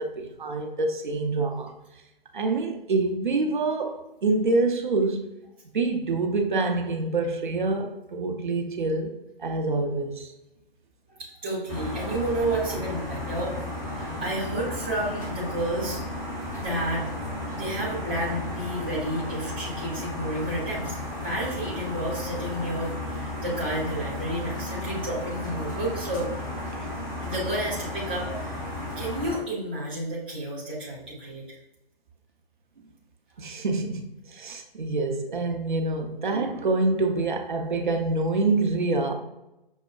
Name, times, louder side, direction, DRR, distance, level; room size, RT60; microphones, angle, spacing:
voice 1, 0.0-1.7 2.3-5.3 5.7-9.1 9.4-10.3 33.4-39.1, right 3 dB, 55° right, 0.6 m, -26 dB
voice 2, 11.1-13.5 13.8-16.0 16.6-17.0 17.5-26.3 27.2-28.6 29.0-31.4, right 1 dB, 10° right, 0.4 m, -31 dB
sound 1, 11.7-29.4, left 1 dB, 20° left, 0.7 m, -34 dB
6.2 x 2.1 x 2.3 m
figure-of-eight pair, 135°, 30 cm